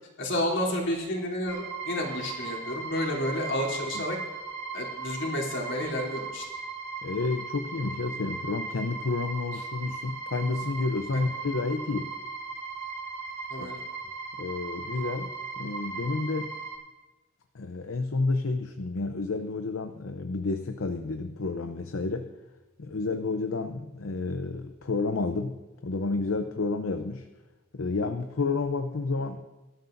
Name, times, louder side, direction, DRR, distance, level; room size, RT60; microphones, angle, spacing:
voice 1, 0.2-4.2 4.7-6.4 9.5-9.6 11.1-11.3 13.5-13.8, left 1 dB, 65° left, -3 dB, 3.3 m, -30 dB
sound 1, 1.5-16.7, right 4 dB, 35° right, 5.1 m, -37 dB
voice 2, 7.0-12.1 14.4-16.6 17.5-22.3 22.8-27.3 27.7-29.4, left 3 dB, 80° left, 7 dB, 0.7 m, -30 dB
23.0 x 13.0 x 2.6 m, 1.1 s
head